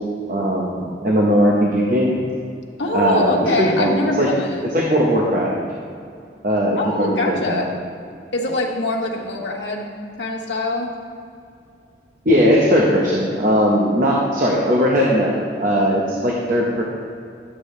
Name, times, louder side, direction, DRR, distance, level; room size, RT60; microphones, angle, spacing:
voice 1, 0.0-2.2 2.9-4.3 4.7-5.5 6.4-7.7 12.2-16.8, equal, 50° right, -3 dB, 1.1 m, -19 dB
voice 2, 2.8-4.6 6.8-7.7 8.3-9.9 10.2-10.9, left 1 dB, 90° left, 0 dB, 1.2 m, -23 dB
11.5 x 8.5 x 3.3 m, 2.4 s
head